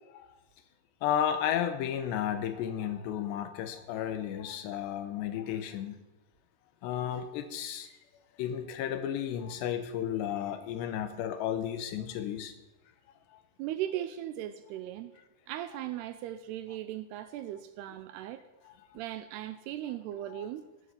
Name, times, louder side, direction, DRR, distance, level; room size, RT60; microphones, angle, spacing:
voice 1, 1.0-6.0 6.8-7.9 8.4-12.5 18.7-18.8 20.3-20.5, left 9 dB, 80° left, 9 dB, 3.1 m, -33 dB
voice 2, 13.6-15.1 15.5-18.4 18.9-20.7, right 12 dB, 85° right, 11 dB, 2.5 m, -38 dB
17.0 x 7.7 x 6.9 m, 1.1 s
omnidirectional pair, 5.1 m